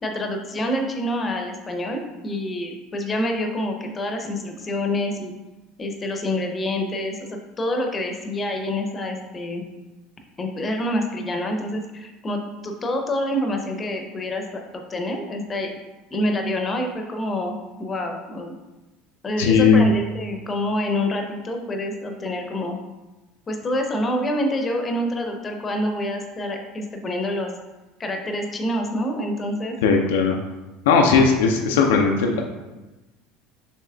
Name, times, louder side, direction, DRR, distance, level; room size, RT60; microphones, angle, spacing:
voice 1, 0.0-5.3 5.8-9.6 10.4-15.7 16.1-18.5 19.2-22.8 23.5-27.5 28.0-29.7, left 1 dB, 25° left, 4 dB, 0.7 m, -27 dB
voice 2, 19.4-19.9 29.8-30.4 30.9-32.4, left 5 dB, 70° left, 2 dB, 0.4 m, -17 dB
6.6 x 3.0 x 2.3 m, 1.1 s
figure-of-eight pair, 70°, 0 cm